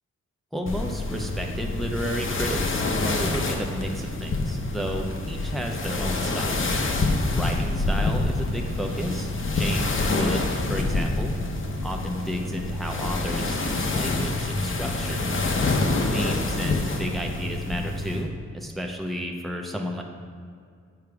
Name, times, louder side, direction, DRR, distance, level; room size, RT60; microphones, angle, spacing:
voice 1, 0.5-6.7 7.3-11.4 11.8-15.2 16.1-20.0, equal, ahead, 1 dB, 0.7 m, -32 dB
sound 1, 0.7-18.2, left 2 dB, 45° left, 0.8 m, -27 dB
6.8 x 4.7 x 4.6 m, 2.2 s
cardioid pair, 60°, 29 cm